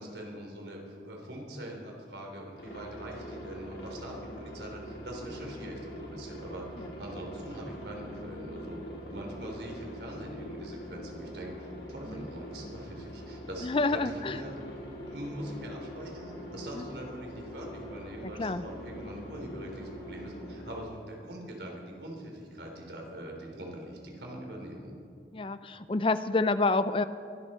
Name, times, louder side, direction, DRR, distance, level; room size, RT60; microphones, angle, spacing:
voice 1, 0.0-14.6 15.0-25.0, right 1 dB, 75° right, 0 dB, 3.5 m, -43 dB
Aircraft, 2.6-20.8, equal, 80° left, 4.1 m, -43 dB
voice 2, 13.6-14.4 16.7-16.9 18.2-18.6 25.3-27.0, left 3 dB, 30° left, 13 dB, 0.5 m, -28 dB
23.0 x 13.0 x 4.4 m, 2.6 s
head